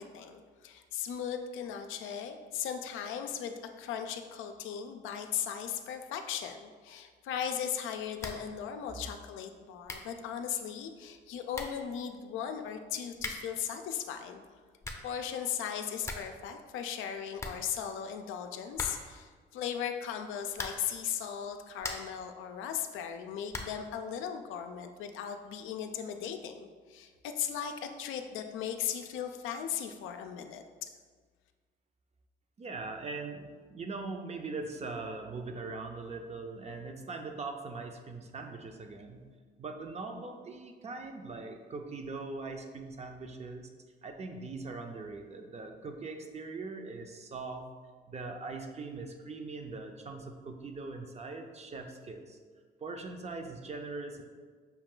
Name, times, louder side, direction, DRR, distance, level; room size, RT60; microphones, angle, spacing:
voice 1, 0.0-14.4 15.0-30.9, left 8 dB, 85° left, 6 dB, 0.4 m, -37 dB
sound 1, 8.2-8.6 8.8-8.9 9.5-9.6 9.8-10.2 11.1-11.2 11.5-11.9 13.1-13.6 14.6-15.2 15.5-15.6 15.8-16.4 16.7-16.8 17.0-17.1 17.4-18.2 18.7-19.2 20.5-21.0 21.5-22.2 23.5-23.9, left 2 dB, 15° left, 0.5 m, -41 dB
voice 2, 32.6-39.2 39.6-43.7 44.0-47.7 48.1-52.4 52.8-54.2, right 3 dB, 35° right, 4 dB, 0.5 m, -41 dB
5.6 x 2.3 x 3.7 m, 1.5 s
cardioid pair, 90°, 20 cm